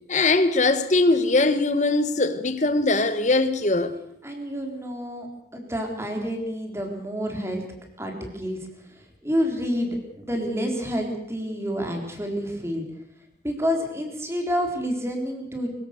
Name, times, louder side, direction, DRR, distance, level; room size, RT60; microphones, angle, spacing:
voice 1, 0.1-3.9, left 2 dB, 40° left, 1.6 m, -21 dB
voice 2, 4.2-5.3 5.5-7.6 8.0-8.6 8.8-12.8 13.4-15.7, equal, 15° right, 3.9 m, -28 dB
24.5 x 16.5 x 6.8 m
head